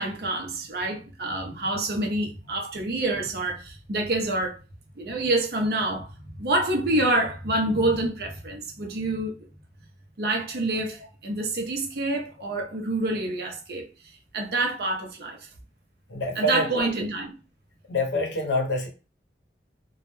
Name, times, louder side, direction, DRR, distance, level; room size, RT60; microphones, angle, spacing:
voice 1, 0.0-4.6 5.0-9.3 10.2-13.9 14.3-15.4 16.4-17.3, right 2 dB, 60° right, 0.6 m, -27 dB
voice 2, 16.1-16.9 17.9-18.9, left 1 dB, 85° left, 0.7 m, -26 dB
2.2 x 2.1 x 3.0 m
head